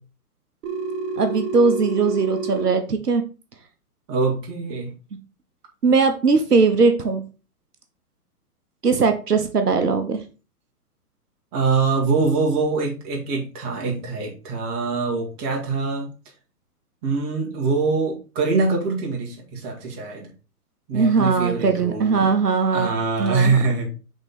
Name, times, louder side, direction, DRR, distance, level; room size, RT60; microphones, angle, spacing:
Telephone, 0.6-2.6, right 4 dB, 55° right, 1.5 m, -28 dB
voice 1, 1.2-3.2 5.8-7.2 8.8-10.2 20.9-22.9 23.2-23.6, right 4 dB, 85° right, 7 dB, 0.9 m, -19 dB
voice 2, 4.1-4.9 11.5-16.1 17.0-20.3 20.9-22.4 22.7-23.9, right 4 dB, 30° right, -1 dB, 2.1 m, -24 dB
6.0 x 3.7 x 4.2 m, 0.34 s
figure-of-eight pair, 120°, 45 cm